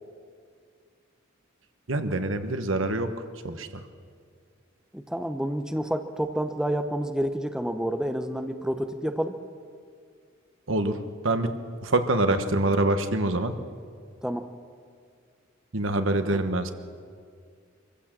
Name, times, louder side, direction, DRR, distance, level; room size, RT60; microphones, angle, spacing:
voice 1, 1.9-3.1 3.4-3.8 10.7-11.5 11.8-13.5 15.7-16.7, right 2 dB, 70° right, 8 dB, 1.3 m, -25 dB
voice 2, 4.9-9.3 14.2-14.5, equal, 5° right, 7 dB, 0.8 m, -29 dB
24.0 x 15.5 x 7.6 m, 2.2 s
head